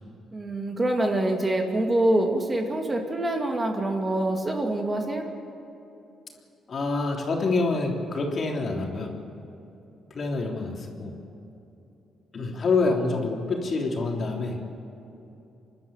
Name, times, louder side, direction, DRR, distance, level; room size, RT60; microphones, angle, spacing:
voice 1, 0.3-5.3, right 1 dB, 25° right, 2 dB, 2.4 m, -25 dB
voice 2, 6.7-9.1 10.1-11.1 12.3-14.6, left 3 dB, 45° left, 0 dB, 3.5 m, -26 dB
27.5 x 12.0 x 9.1 m, 2.9 s
cardioid pair, 90°, 0 cm